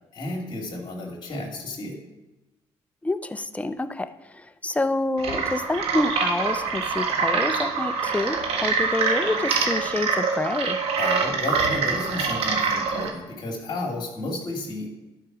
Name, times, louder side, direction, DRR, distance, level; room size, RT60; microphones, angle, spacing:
voice 1, 0.1-2.0 11.0-14.9, left 2 dB, 45° left, -1 dB, 2.7 m, -32 dB
voice 2, 3.0-10.8, left 2 dB, 15° left, 11 dB, 0.7 m, -27 dB
sound 1, 5.2-13.1, right 5 dB, 75° right, 1.4 m, -25 dB
11.5 x 4.9 x 6.2 m, 1.1 s
cardioid pair, 80°, 10 cm